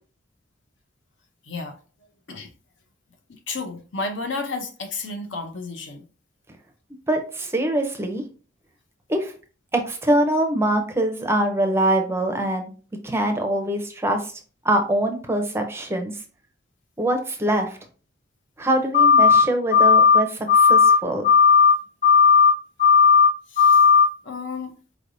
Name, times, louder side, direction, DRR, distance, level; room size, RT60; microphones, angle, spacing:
voice 1, 1.5-1.8 2.3-2.5 3.3-6.0 23.5-23.8 24.2-24.7, left 3 dB, 60° left, 0.7 m, -32 dB
voice 2, 7.1-8.2 9.1-9.3 9.7-12.7 13.0-14.3 14.6-16.2 17.0-17.8 18.6-21.2, right 1 dB, 10° right, 0.5 m, -23 dB
sound 1, 18.9-19.4 19.7-20.2 20.5-21.0 21.2-21.7 22.0-22.5 22.8-23.3 23.6-24.0, left 6 dB, 35° left, 0.9 m, -14 dB
4.7 x 3.3 x 2.6 m
head